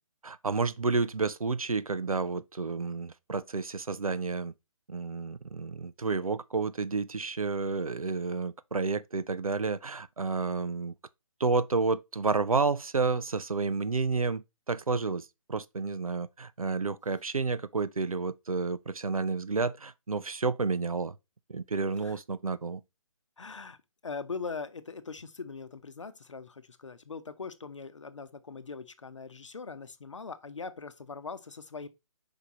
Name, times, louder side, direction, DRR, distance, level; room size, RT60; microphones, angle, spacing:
voice 1, 0.2-4.5 4.9-10.9 11.4-21.2 21.5-22.8, right 4 dB, 80° right, 0.5 m, -30 dB
voice 2, 23.4-23.8 24.0-31.9, left 4 dB, 60° left, 0.8 m, -41 dB
5.1 x 4.7 x 4.1 m
figure-of-eight pair, 145°, 18 cm